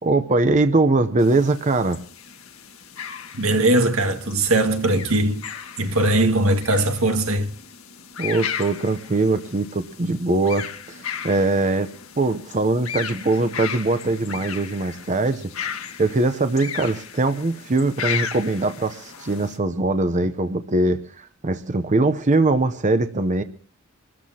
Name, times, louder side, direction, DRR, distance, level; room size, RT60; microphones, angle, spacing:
voice 1, 0.0-2.0 8.2-15.5 16.0-23.4, right 2 dB, 35° right, 0.7 m, -22 dB
sound 1, 1.2-19.6, left 8 dB, 80° left, 1.6 m, -35 dB
voice 2, 3.3-5.4 5.8-7.5, right 1 dB, 85° right, 1.9 m, -20 dB
26.0 x 13.5 x 2.8 m
head